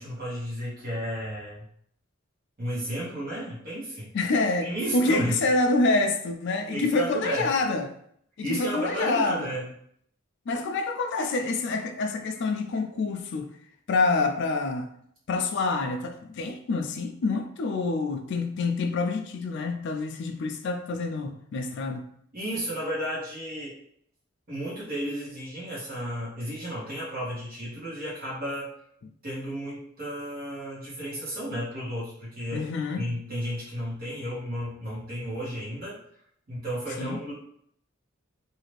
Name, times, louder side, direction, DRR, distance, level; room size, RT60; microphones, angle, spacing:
voice 1, 0.0-1.6 2.6-4.1 4.6-5.4 6.7-7.5 8.4-9.7 22.3-23.8 24.5-28.7 29.2-32.6 33.0-36.0 36.5-37.3, equal, 45° right, -7 dB, 1.1 m, -33 dB
voice 2, 4.1-7.9 8.4-9.5 10.5-13.5 13.9-14.9 15.3-22.0 32.5-33.0 37.0-37.2, left 3 dB, 60° left, 5 dB, 0.4 m, -27 dB
2.7 x 2.4 x 3.2 m, 0.68 s
head